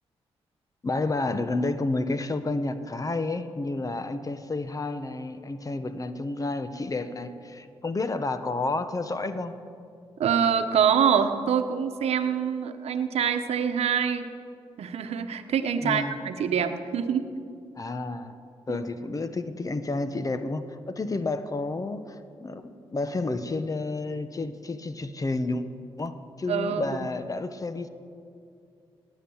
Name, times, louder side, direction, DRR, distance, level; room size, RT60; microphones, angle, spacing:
voice 1, 0.8-9.5 15.8-16.2 17.8-18.4 18.7-25.6 26.0-27.9, left 2 dB, 35° left, 11 dB, 1.1 m, -30 dB
voice 2, 10.2-14.3 14.8-17.3 18.7-18.8 26.5-26.8, right 7 dB, 80° right, 8 dB, 1.0 m, -25 dB
17.5 x 9.4 x 7.2 m, 2.4 s
cardioid pair, 65°, 11 cm